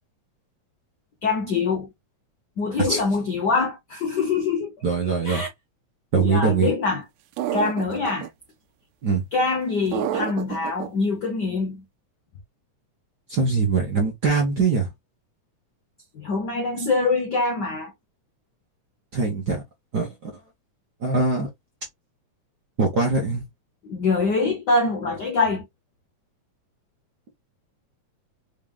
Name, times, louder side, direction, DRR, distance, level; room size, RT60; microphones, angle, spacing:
voice 1, 1.2-1.9 2.6-4.7 5.2-5.5 6.1-7.0 7.5-8.3 9.3-11.8 16.1-17.9 23.8-25.7, left 3 dB, 80° left, 0.9 m, -24 dB
voice 2, 4.8-5.4 6.1-6.7 9.0-9.2 13.3-14.9 19.1-19.6 19.9-20.3 21.0-21.5 22.8-23.4, right 4 dB, 55° right, 1.1 m, -22 dB
sound 1, 7.4-8.3 9.9-10.9, right 11 dB, 80° right, 1.8 m, -28 dB
5.0 x 3.6 x 2.4 m
omnidirectional pair, 3.4 m